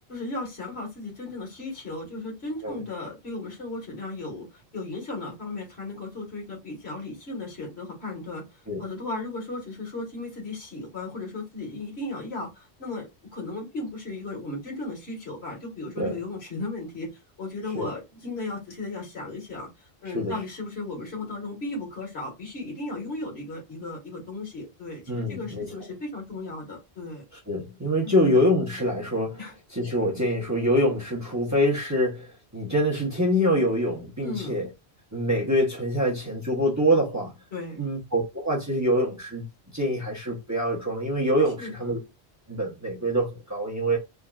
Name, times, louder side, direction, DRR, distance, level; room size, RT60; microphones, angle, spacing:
voice 1, 0.1-17.1 17.4-27.2 28.0-28.2 29.4-29.5 34.2-34.6 37.5-37.8 41.6-42.0, left 2 dB, 70° left, 1.8 m, -36 dB
voice 2, 25.1-25.7 27.5-29.4 29.7-34.7 35.1-37.3 37.8-39.5 39.7-42.0 42.5-44.0, equal, 15° right, 0.9 m, -25 dB
3.6 x 2.7 x 2.3 m
omnidirectional pair, 1.1 m